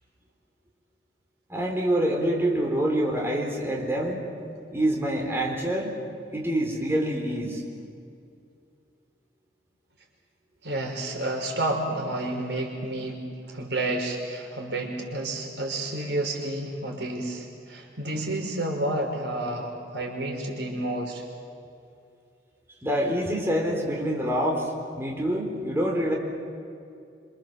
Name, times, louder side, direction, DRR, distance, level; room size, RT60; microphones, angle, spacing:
voice 1, 1.5-4.3 4.7-6.0 6.3-7.6 22.8-24.7 25.0-26.1, right 1 dB, 15° right, -1 dB, 4.2 m, -26 dB
voice 2, 10.6-13.2 13.5-21.2, right 1 dB, 80° right, 1 dB, 5.2 m, -30 dB
27.5 x 26.5 x 7.5 m, 2.4 s
head